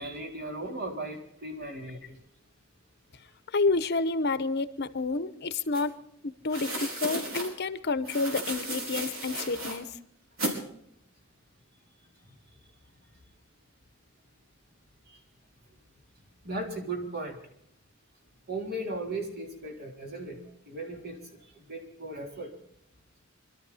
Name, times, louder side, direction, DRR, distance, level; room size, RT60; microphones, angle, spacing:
voice 1, 0.0-2.2 15.1-15.2 16.4-17.4 18.5-20.4 20.7-22.5, right 2 dB, 50° right, 2 dB, 3.6 m, -37 dB
voice 2, 3.5-5.9 6.2-9.9, left 3 dB, 55° left, 13 dB, 0.9 m, -29 dB
sound 1, 5.7-5.8 6.5-7.5 8.0-9.8 10.4-10.6, right 1 dB, 70° right, 4.4 m, -34 dB
24.5 x 13.0 x 4.1 m, 0.70 s
head